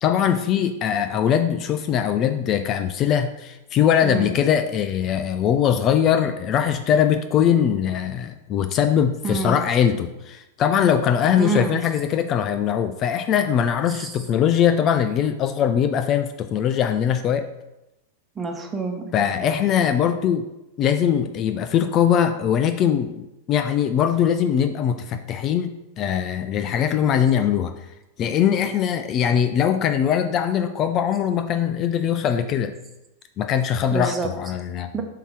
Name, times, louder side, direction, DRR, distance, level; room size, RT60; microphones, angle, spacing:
voice 1, 0.0-17.5 19.1-20.5 20.8-27.8 28.2-32.7 33.4-34.9, left 9 dB, 40° left, 8 dB, 0.4 m, -21 dB
voice 2, 4.0-4.3 9.2-9.6 11.4-11.8 13.9-14.2 18.3-19.2 33.9-34.3 34.9-35.0, right 4 dB, 20° right, 3 dB, 1.0 m, -27 dB
7.0 x 2.9 x 4.7 m, 0.92 s
hypercardioid pair, 110°, 0 cm